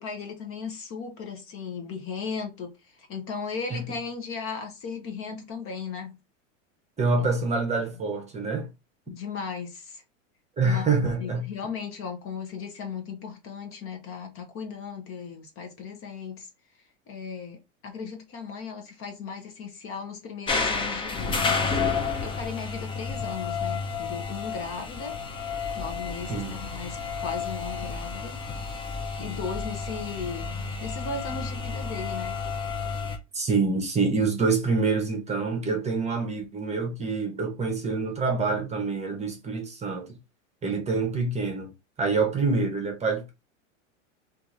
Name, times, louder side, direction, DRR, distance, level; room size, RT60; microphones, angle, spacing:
voice 1, 0.0-6.2 9.1-10.0 10.6-16.5 17.1-21.9 22.2-25.2 25.8-28.4 29.2-32.4, left 5 dB, 35° left, 0.8 m, -36 dB
voice 2, 7.0-8.7 10.6-11.5 26.3-26.5 33.3-40.2 40.6-41.7 42.0-43.3, right 4 dB, 15° right, 0.9 m, -26 dB
sound 1, 20.5-33.2, left 4 dB, 15° left, 0.5 m, -31 dB
2.8 x 2.6 x 3.7 m
hypercardioid pair, 120°, 39 cm